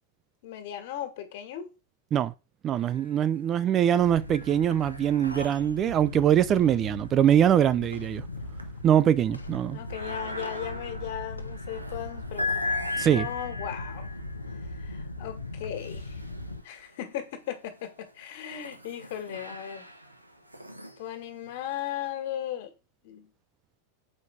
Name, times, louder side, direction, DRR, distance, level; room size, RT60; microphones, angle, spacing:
voice 1, 0.4-1.7 9.7-12.8 13.1-14.1 14.7-16.2 16.6-19.9 21.0-22.7 23.0-23.3, left 10 dB, 50° left, 1.8 m, -37 dB
voice 2, 2.6-8.2 8.8-9.8 13.0-13.3, right 10 dB, 30° right, 0.5 m, -23 dB
sound 1, 2.8-3.4 3.8-17.0 17.6-22.1, left 3 dB, 90° right, 1.2 m, -39 dB
sound 2, 4.0-16.6, left 2 dB, 80° left, 0.9 m, -39 dB
7.5 x 5.2 x 4.7 m
figure-of-eight pair, 90°, 0 cm